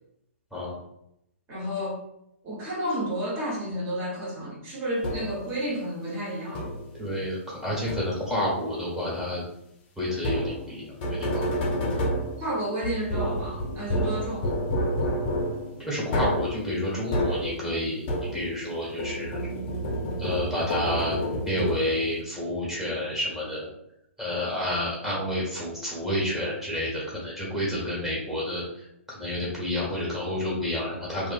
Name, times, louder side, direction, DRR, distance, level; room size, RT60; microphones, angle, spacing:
voice 1, 1.5-2.0 2.4-6.7 12.4-14.5, equal, 30° right, -5 dB, 1.2 m, -31 dB
sound 1, 5.0-5.5 6.5-7.0 7.9-8.4 10.2-18.7 19.0-22.1, equal, 40° left, 0.6 m, -29 dB
voice 2, 7.0-9.4 10.0-11.5 15.8-19.4 20.2-23.7 24.2-31.3, left 1 dB, 5° right, -7 dB, 1.2 m, -30 dB
2.7 x 2.4 x 2.4 m, 0.78 s
figure-of-eight pair, 120°, 7 cm